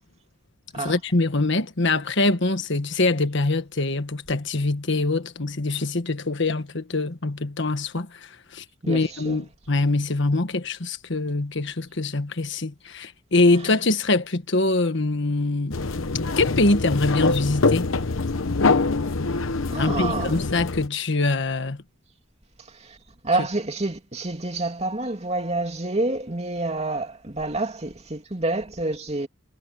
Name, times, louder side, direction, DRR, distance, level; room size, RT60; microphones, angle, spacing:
voice 1, 0.7-8.1 8.5-15.8 16.4-17.9 19.8-21.8, left 2 dB, 60° left, 1.5 m, -24 dB
voice 2, 8.8-9.4 19.7-20.5 22.9-23.0 23.2-29.3, right 2 dB, 30° right, 2.8 m, -28 dB
sound 1, 15.7-20.9, left 3 dB, 80° left, 1.0 m, -24 dB
head